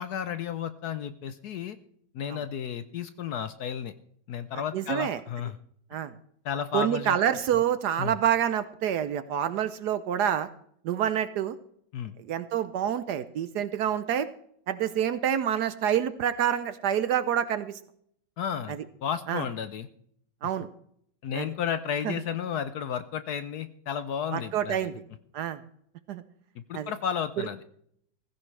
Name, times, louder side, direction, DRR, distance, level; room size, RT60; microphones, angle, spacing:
voice 1, 0.0-1.8 2.1-3.9 4.3-5.6 6.4-7.2 8.0-8.2 11.9-12.1 18.4-18.8 19.0-19.9 21.2-24.9 26.6-27.6, left 8 dB, 65° left, 11 dB, 1.0 m, -32 dB
voice 2, 4.7-5.2 5.9-6.1 6.7-10.5 10.8-11.5 12.3-14.3 14.7-17.8 19.3-19.4 20.4-20.7 21.3-21.5 22.0-22.1 24.3-24.9 25.3-25.6 26.1-26.2 26.7-26.9, right 9 dB, 65° right, 13 dB, 1.1 m, -27 dB
16.0 x 15.5 x 3.3 m, 0.67 s
omnidirectional pair, 2.1 m